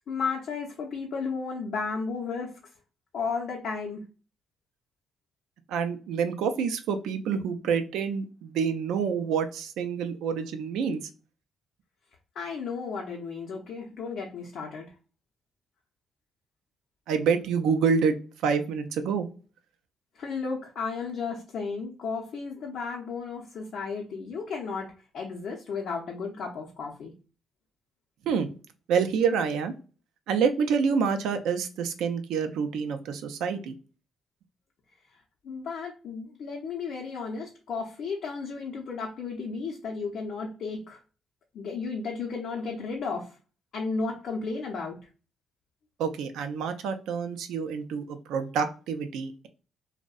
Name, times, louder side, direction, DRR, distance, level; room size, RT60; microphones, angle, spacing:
voice 1, 0.1-2.5 3.1-4.0 12.4-14.9 20.2-24.9 25.1-27.1 35.4-41.0 41.5-43.3 43.7-45.0, left 4 dB, 65° left, 0 dB, 0.5 m, -33 dB
voice 2, 5.7-11.0 17.1-18.2 18.4-19.3 28.3-28.5 28.9-29.7 30.3-33.7 46.0-49.5, right 6 dB, 85° right, 8 dB, 0.3 m, -27 dB
2.6 x 2.0 x 2.3 m, 0.35 s
cardioid pair, 90°, 0 cm